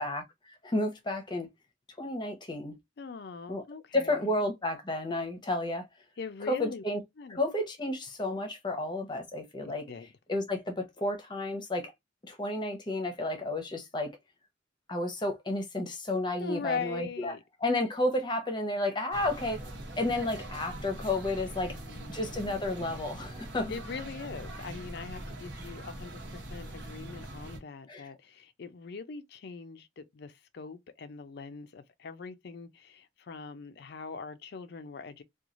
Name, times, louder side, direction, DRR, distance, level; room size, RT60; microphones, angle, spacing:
voice 1, 0.0-1.5 2.0-2.8 3.5-3.6 3.9-5.9 6.5-7.0 7.3-9.8 10.3-11.9 12.2-14.2 14.9-17.3 17.6-19.7 20.0-21.8 22.1-23.7 27.9-28.1, left 2 dB, 25° left, 0.7 m, -31 dB
voice 2, 3.0-4.4 6.2-6.8 7.2-7.4 9.6-10.1 16.4-17.4 21.6-22.4 23.7-35.2, left 5 dB, 55° left, 0.4 m, -41 dB
sound 1, 19.1-27.6, right 1 dB, 60° right, 1.0 m, -42 dB
3.0 x 2.3 x 2.4 m
head